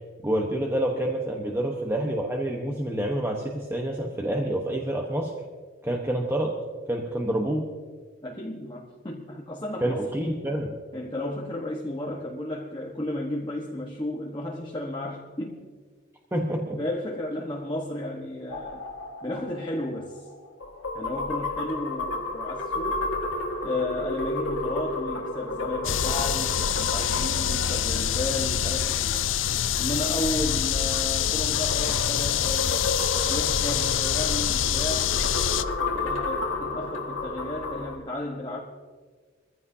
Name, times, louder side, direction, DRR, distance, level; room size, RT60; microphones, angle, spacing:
voice 1, 0.2-5.3 5.8-6.6 6.9-7.7 9.8-10.8 16.3-16.8, right 1 dB, 10° right, 1.0 m, -27 dB
voice 2, 8.2-10.0 10.9-15.6 16.8-18.9 19.2-20.3 20.9-23.1 23.6-29.3 29.8-32.9 33.3-35.2 35.9-38.6, left 1 dB, 20° left, 1.2 m, -33 dB
sound 1, 18.5-29.1 31.1-38.0, left 2 dB, 80° left, 1.7 m, -32 dB
sound 2, 25.8-35.6, left 9 dB, 65° left, 0.5 m, -25 dB
22.5 x 15.0 x 2.8 m
head